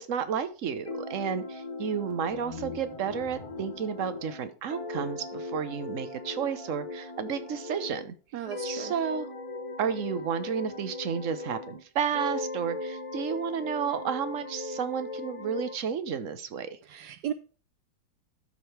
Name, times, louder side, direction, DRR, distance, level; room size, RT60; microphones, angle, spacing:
voice 1, 0.0-8.1 8.6-9.3 9.8-16.8, right 7 dB, 50° right, 1.0 m, -32 dB
sound 1, 0.9-8.1 8.5-11.8 12.1-15.8, left 2 dB, 25° left, 0.8 m, -38 dB
sound 2, 2.1-5.3, left 5 dB, 70° left, 2.0 m, -48 dB
voice 2, 8.3-8.9 16.8-17.3, right 10 dB, 85° right, 0.9 m, -35 dB
12.5 x 5.6 x 3.3 m
omnidirectional pair, 2.4 m